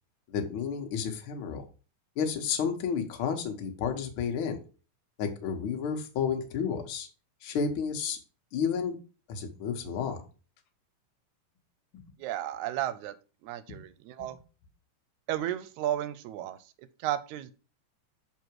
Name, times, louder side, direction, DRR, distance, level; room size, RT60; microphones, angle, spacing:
voice 1, 0.3-1.6 2.2-4.6 5.2-7.1 7.4-8.2 8.5-9.0 9.3-10.2 11.9-12.1 13.7-13.8 14.2-14.3, left 6 dB, 60° left, 3 dB, 1.5 m, -31 dB
voice 2, 12.2-13.1 13.4-14.4 15.3-17.5, right 12 dB, 80° right, 14 dB, 1.9 m, -33 dB
6.8 x 4.1 x 4.6 m, 0.34 s
omnidirectional pair, 3.5 m